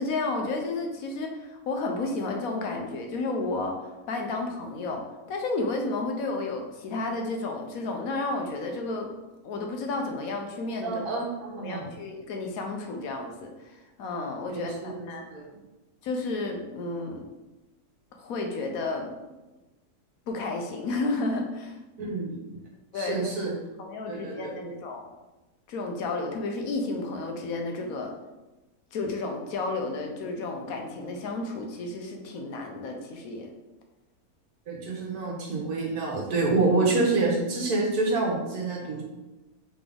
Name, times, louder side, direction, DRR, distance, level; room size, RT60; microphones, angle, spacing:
voice 1, 0.0-3.8 4.1-9.1 9.4-11.1 11.6-15.3 16.0-17.2 18.2-19.2 20.3-21.8 22.9-23.3 23.8-25.0 25.7-28.1 28.9-33.5, left 3 dB, 70° left, 3 dB, 1.1 m, -32 dB
voice 2, 10.8-11.9 14.5-15.5 22.0-22.3 22.9-23.6 24.1-24.7 34.7-39.0, right 3 dB, 80° right, -2 dB, 1.5 m, -27 dB
3.9 x 3.7 x 3.5 m, 1.1 s
omnidirectional pair, 1.6 m